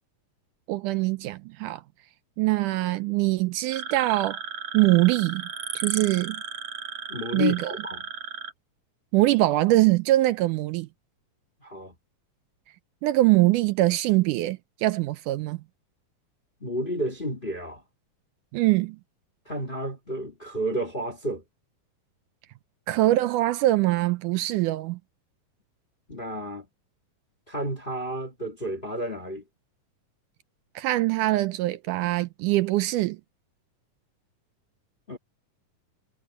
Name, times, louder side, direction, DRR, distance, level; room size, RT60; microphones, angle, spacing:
voice 1, 0.7-1.8 2.4-4.4 4.7-5.5 5.8-6.4 7.3-7.7 9.1-10.9 13.0-15.6 18.5-19.0 22.9-25.0 30.8-33.2, right 17 dB, 80° right, 2.0 m, -23 dB
sound 1, 3.7-8.5, right 7 dB, 50° right, 2.8 m, -35 dB
voice 2, 7.1-8.1 11.6-11.9 16.6-17.8 19.4-21.4 26.1-26.7 27.5-29.4 35.1-35.2, equal, 20° left, 1.5 m, -31 dB
omnidirectional pair, 3.9 m